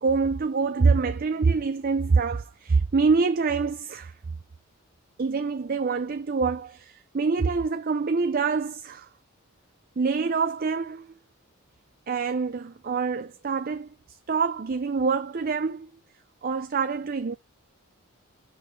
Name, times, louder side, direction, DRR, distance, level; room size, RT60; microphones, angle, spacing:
voice 1, 0.0-4.1 5.2-9.1 10.0-11.1 12.1-13.9 14.3-15.9 16.4-17.4, right 4 dB, 40° right, 0.5 m, -25 dB
6.7 x 5.9 x 3.3 m
head